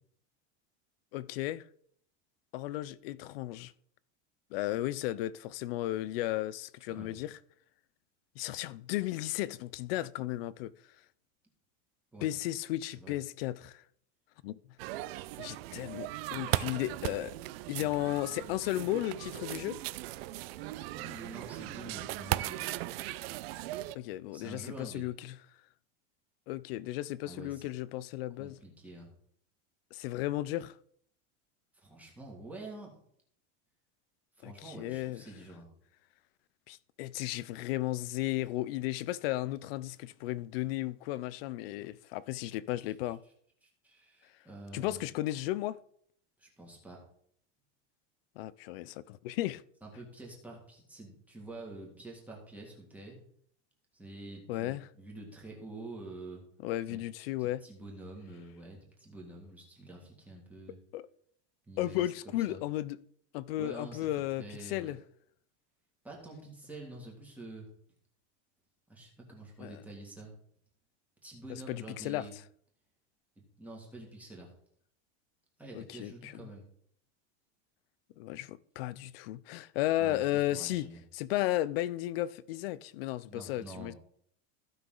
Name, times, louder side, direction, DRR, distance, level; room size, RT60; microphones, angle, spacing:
voice 1, 1.1-1.7 2.5-3.7 4.5-7.4 8.4-10.7 12.2-13.8 14.4-14.5 15.4-17.3 17.7-19.8 23.9-25.4 26.5-28.6 29.9-30.8 34.4-35.2 36.7-43.2 44.7-45.8 48.4-49.6 54.5-54.9 56.6-57.6 60.9-61.1 61.8-63.0 63.3-65.0 69.6-69.8 71.5-72.3 75.7-76.5 78.2-80.9 81.1-83.9, left 15 dB, 55° left, 0.5 m, -34 dB
voice 2, 12.8-13.2 20.9-22.6 24.3-25.1 27.2-27.7 28.4-29.1 31.8-32.9 34.4-35.7 43.6-45.0 46.4-47.0 49.8-53.2 53.9-56.4 56.9-57.0 57.4-60.8 61.7-62.6 63.6-64.1 64.4-64.9 66.0-67.7 68.9-70.3 71.2-72.3 73.6-74.5 75.6-76.7 80.0-81.0 83.3-83.9, right 2 dB, 5° right, 1.9 m, -47 dB
sound 1, 14.8-23.9, right 16 dB, 55° right, 0.5 m, -37 dB
15.5 x 5.9 x 3.8 m
supercardioid pair, 175°, 36 cm